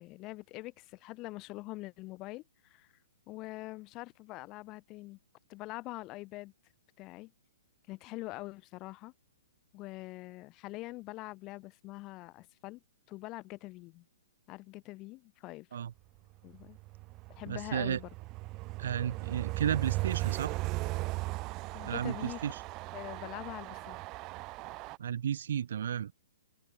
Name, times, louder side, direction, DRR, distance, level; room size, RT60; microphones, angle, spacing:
voice 1, 0.0-2.9 3.3-5.2 5.5-6.5 7.0-7.3 7.9-9.1 9.7-12.8 13.1-14.0 14.5-15.7 16.4-16.8 17.3-18.1 21.7-22.4 22.9-24.0, left 20 dB, 30° left, 1.4 m, -44 dB
Train, 16.5-25.0, right 21 dB, 30° right, 0.3 m, -37 dB
voice 2, 17.5-18.0 18.8-20.5 21.8-22.6 25.0-26.1, right 9 dB, 65° right, 1.0 m, -33 dB
open air
hypercardioid pair, 125°, 0 cm